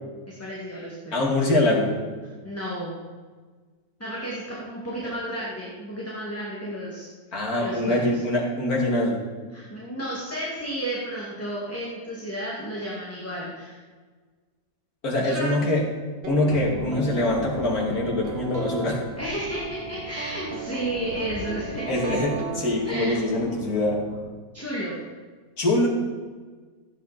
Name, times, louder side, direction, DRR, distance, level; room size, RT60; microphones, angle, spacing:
voice 1, 0.3-1.4 2.4-3.0 4.0-7.1 7.6-8.2 9.5-13.8 15.2-15.5 19.2-22.2 22.8-23.6 24.5-25.0, right 1 dB, 10° left, -6 dB, 2.4 m, -32 dB
voice 2, 1.1-2.0 7.3-9.2 15.0-15.8 16.3-19.0 21.9-22.3 22.6-24.0 25.6-25.9, left 1 dB, 75° left, -2 dB, 3.0 m, -23 dB
sound 1, 16.2-23.3, right 4 dB, 45° right, 1.1 m, -36 dB
sound 2, 16.5-24.3, left 2 dB, 60° left, 2.4 m, -40 dB
15.5 x 9.6 x 4.4 m, 1.4 s
omnidirectional pair, 1.6 m